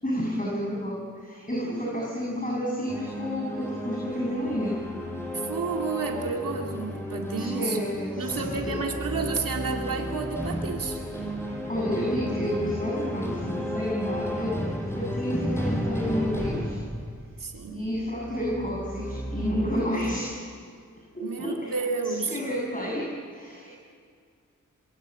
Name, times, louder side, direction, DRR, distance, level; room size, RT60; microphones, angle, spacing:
voice 1, 0.0-4.8 7.4-8.8 11.7-16.8 17.7-20.4 21.1-21.7 22.0-23.7, equal, 25° left, -3 dB, 7.5 m, -30 dB
sound 1, 2.9-20.2, equal, 10° left, 7.5 m, -33 dB
voice 2, 5.3-7.8 8.2-11.0 17.4-17.9 19.6-20.2 21.2-22.4, right 4 dB, 85° right, 1 dB, 2.5 m, -31 dB
26.0 x 23.0 x 7.7 m, 2.2 s
cardioid pair, 45°, 32 cm